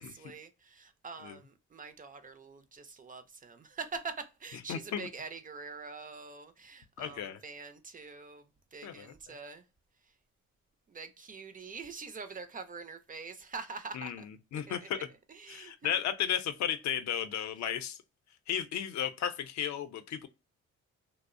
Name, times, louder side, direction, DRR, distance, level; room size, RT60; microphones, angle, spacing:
voice 1, 0.0-9.6 10.9-14.3 14.5-14.9 15.3-16.0, right 4 dB, 30° right, 0.4 m, -45 dB
voice 2, 4.7-5.1 7.0-7.4 8.8-9.3 13.9-15.0 15.5-18.0 18.5-20.3, left 9 dB, 65° left, 0.5 m, -34 dB
2.5 x 2.0 x 2.4 m
cardioid pair, 90°, 30 cm